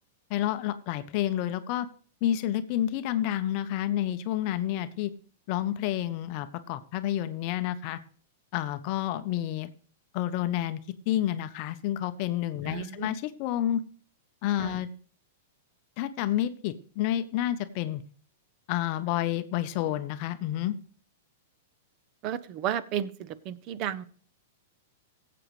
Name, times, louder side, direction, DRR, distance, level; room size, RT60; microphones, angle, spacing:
voice 1, 0.3-1.9 2.2-5.1 5.5-8.0 8.5-9.7 10.1-10.8 11.1-13.8 14.4-14.9 16.0-18.0 18.7-20.7, left 12 dB, 45° left, 11 dB, 0.6 m, -29 dB
voice 2, 12.7-13.1 14.6-14.7 22.2-23.1 23.5-24.0, right 10 dB, 35° right, 16 dB, 0.7 m, -32 dB
17.5 x 7.7 x 3.1 m, 0.43 s
hypercardioid pair, 145°, 0 cm